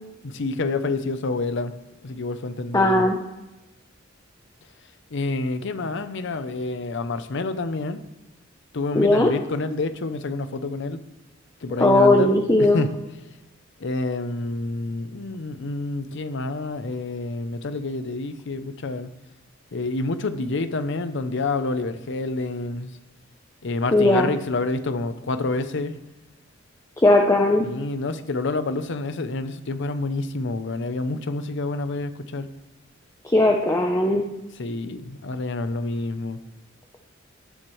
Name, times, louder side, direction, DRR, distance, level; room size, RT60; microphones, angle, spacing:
voice 1, 0.2-1.7 2.0-3.1 5.1-8.0 8.7-11.0 11.6-12.3 12.6-13.0 13.8-19.1 19.7-22.9 23.6-26.0 27.6-32.5 34.6-36.4, left 2 dB, 65° left, 11 dB, 0.7 m, -28 dB
voice 2, 2.7-3.2 8.9-9.3 11.8-12.8 23.9-24.3 27.0-27.7 33.2-34.2, left 2 dB, 15° left, 1 dB, 0.7 m, -18 dB
17.0 x 7.6 x 3.2 m, 0.99 s
head